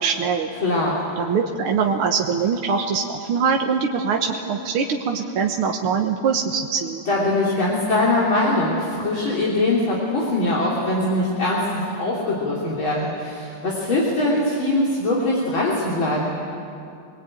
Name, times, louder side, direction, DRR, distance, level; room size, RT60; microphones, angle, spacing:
voice 1, 0.0-0.5 1.2-7.0, right 6 dB, 80° right, 2 dB, 2.1 m, -23 dB
voice 2, 0.6-1.0 7.1-16.2, left 2 dB, 65° left, -5 dB, 4.1 m, -22 dB
25.0 x 22.0 x 9.0 m, 2.5 s
omnidirectional pair, 2.4 m